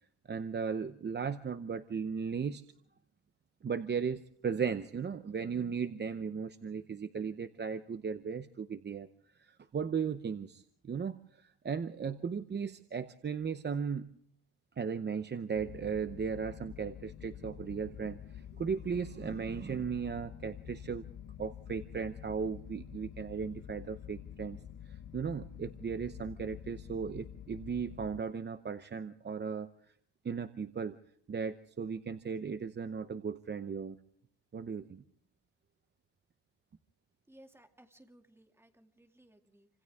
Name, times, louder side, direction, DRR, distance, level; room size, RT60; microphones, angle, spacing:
voice 1, 0.3-2.6 3.6-9.1 9.4-14.1 14.8-21.0 21.4-24.6 24.9-29.7 30.2-31.0 31.3-34.0 34.5-35.0, right 6 dB, 25° right, 11 dB, 0.8 m, -36 dB
sound 1, 15.5-28.2, left 10 dB, 55° left, 0.9 m, -48 dB
voice 2, 37.3-39.7, right 1 dB, 5° right, 5 dB, 2.4 m, -60 dB
29.0 x 26.5 x 3.6 m, 0.63 s
cardioid pair, 155°, 39 cm